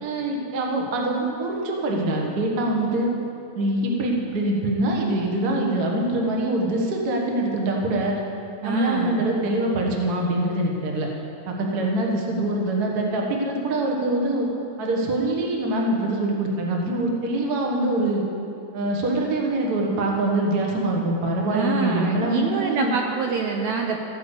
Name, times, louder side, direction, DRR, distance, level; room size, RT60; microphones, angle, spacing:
voice 1, 0.0-3.1 3.5-8.1 8.6-11.1 11.5-14.5 14.8-18.2 18.7-23.0, right 1 dB, 55° right, 0 dB, 1.0 m, -24 dB
voice 2, 8.6-9.2 21.5-24.1, right 5 dB, 80° right, 2 dB, 1.7 m, -26 dB
15.0 x 5.2 x 8.1 m, 2.8 s
omnidirectional pair, 3.8 m